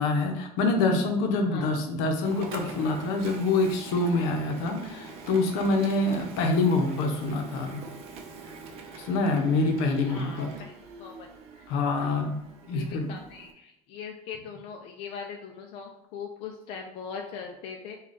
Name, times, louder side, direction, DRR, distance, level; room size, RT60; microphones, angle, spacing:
voice 1, 0.0-7.8 9.0-10.5 11.7-12.4 12.7-13.1, left 3 dB, 75° left, 3 dB, 0.7 m, -26 dB
voice 2, 1.4-1.8 10.0-11.3 11.6-11.7 12.0-12.3 12.7-18.0, left 6 dB, 45° left, 2 dB, 0.4 m, -41 dB
Printer, 2.2-13.5, right 4 dB, 45° right, 0.5 m, -44 dB
3.2 x 2.3 x 3.9 m, 0.83 s
cardioid pair, 160°, 13 cm